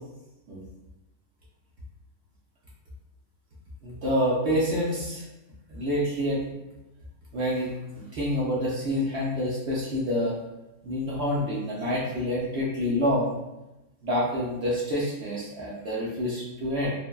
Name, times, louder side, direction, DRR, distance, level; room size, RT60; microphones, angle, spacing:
voice 1, 3.8-5.2 5.7-6.4 7.3-10.3 10.8-13.3 14.0-16.9, equal, 60° right, -6 dB, 0.7 m, -27 dB
3.2 x 2.1 x 2.2 m, 0.97 s
omnidirectional pair, 1.6 m